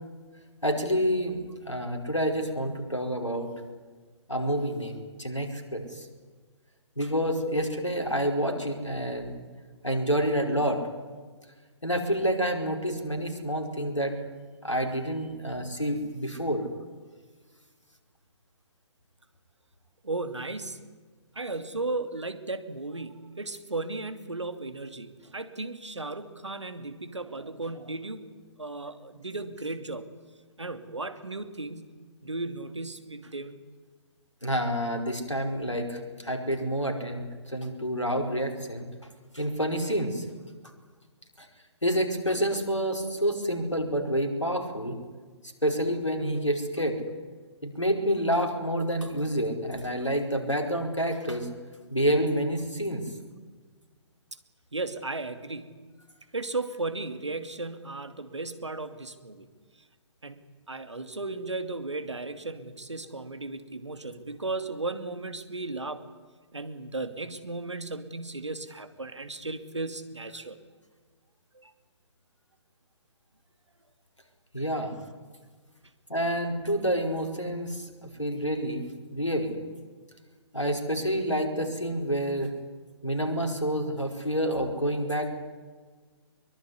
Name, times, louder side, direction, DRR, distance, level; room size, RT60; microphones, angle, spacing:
voice 1, 0.6-3.5 4.3-6.0 7.0-9.3 9.8-10.8 11.8-14.2 14.6-16.7 34.4-38.9 39.3-40.2 41.4-41.5 41.8-45.0 45.6-47.0 47.6-51.5 51.9-53.1 74.5-74.9 76.1-77.8 78.2-79.6 80.5-82.5 83.0-85.3, equal, 90° left, 5 dB, 5.0 m, -28 dB
voice 2, 20.0-20.9 21.4-28.2 28.6-30.1 30.6-32.0 32.2-33.6 54.7-55.8 56.3-59.5 60.2-60.4 60.7-66.0 66.5-70.6 71.5-71.7, right 3 dB, 75° right, 10 dB, 2.6 m, -35 dB
23.5 x 23.0 x 9.8 m, 1.4 s
figure-of-eight pair, 130°, 15 cm